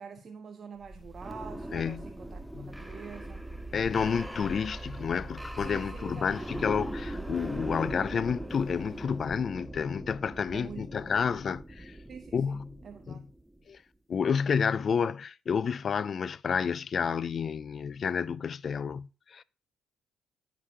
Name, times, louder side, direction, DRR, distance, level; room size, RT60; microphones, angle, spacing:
voice 1, 0.0-3.5 5.6-6.6 10.5-11.1 12.1-13.3, right 6 dB, 45° right, 0.6 m, -46 dB
sound 1, 0.8-13.6, right 1 dB, 5° right, 0.7 m, -40 dB
voice 2, 1.7-2.0 2.5-2.8 3.7-11.9 12.3-12.8 13.1-13.2 13.7-13.8 14.1-19.4, left 6 dB, 50° left, 0.4 m, -30 dB
13.0 x 5.2 x 2.9 m
cardioid pair, 90°, 0 cm